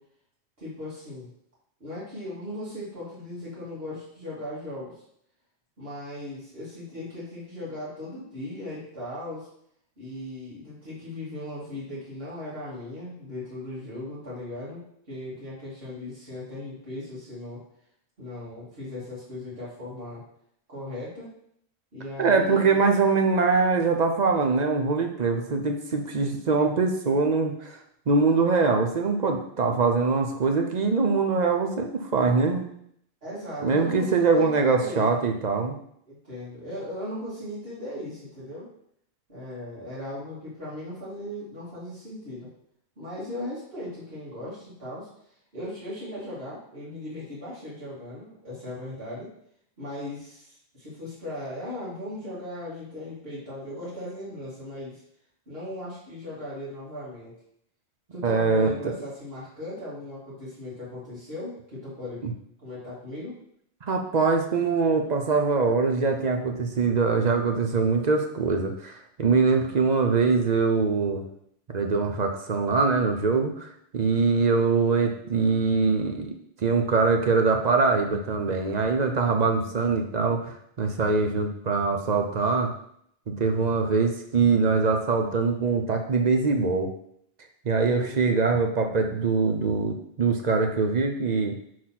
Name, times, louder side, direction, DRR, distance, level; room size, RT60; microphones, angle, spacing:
voice 1, 0.6-1.3 1.8-4.9 5.8-9.5 10.0-14.8 15.1-17.6 18.2-20.2 20.7-21.3 21.9-22.8 33.2-35.1 36.1-38.7 39.3-42.5 43.0-45.1 45.5-49.3 49.8-55.0 55.5-57.3 58.1-62.2 62.6-63.3 87.8-88.4, left 1 dB, 60° right, -10 dB, 3.0 m, -38 dB
voice 2, 22.2-27.8 28.1-32.6 33.6-35.7 58.2-58.9 62.2-62.3 63.9-71.2 71.7-73.7 73.9-82.7 83.3-86.9 87.6-91.6, right 4 dB, 45° right, 4 dB, 0.7 m, -23 dB
4.7 x 4.1 x 5.8 m, 0.70 s
omnidirectional pair, 1.1 m